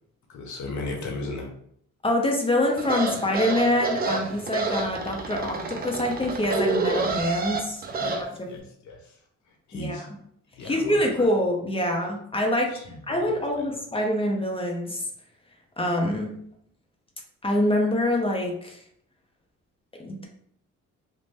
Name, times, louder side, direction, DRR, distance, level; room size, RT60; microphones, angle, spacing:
voice 1, 0.3-1.5 8.0-9.2 9.5-10.1 10.5-11.3 12.7-13.7, left 2 dB, 70° left, 1 dB, 0.8 m, -37 dB
voice 2, 2.0-8.6 9.7-10.0 10.6-12.7 13.1-15.0 15.8-16.3 17.4-18.8 20.0-20.3, left 1 dB, 20° left, 0 dB, 0.6 m, -25 dB
sound 1, 2.8-8.2, right 3 dB, 30° right, 0.4 m, -28 dB
2.5 x 2.1 x 3.3 m, 0.68 s
cardioid pair, 90°, 30 cm